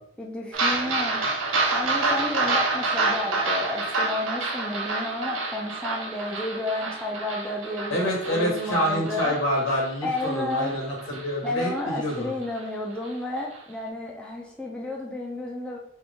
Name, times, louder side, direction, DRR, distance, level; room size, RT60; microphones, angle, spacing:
voice 1, 0.2-1.2 1.7-9.4 10.0-10.8 11.4-15.8, left 2 dB, 5° left, -2 dB, 0.4 m, -31 dB
sound 1, 0.5-11.2 11.6-11.7 12.1-12.2 12.6-12.7, right 3 dB, 70° right, 0.7 m, -28 dB
voice 2, 7.9-12.3, equal, 75° left, -2 dB, 1.4 m, -27 dB
3.7 x 3.1 x 3.4 m, 0.70 s
head